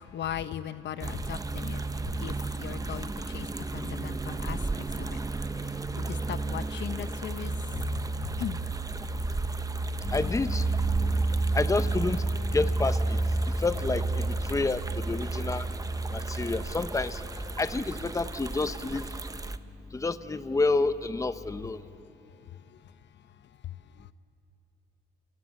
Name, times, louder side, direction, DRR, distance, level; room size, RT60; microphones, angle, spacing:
voice 1, 0.0-5.2 5.5-7.8 8.1-8.6 21.8-22.9 23.6-24.1, left 10 dB, 65° left, 12 dB, 0.8 m, -39 dB
sound 1, 1.0-19.6, right 3 dB, 15° right, 0.8 m, -31 dB
voice 2, 10.0-13.3 13.6-15.7 16.1-17.2 17.6-19.1 19.9-21.8, left 3 dB, 15° left, 11 dB, 0.9 m, -29 dB
30.0 x 29.5 x 6.6 m, 2.8 s
cardioid pair, 90°, 20 cm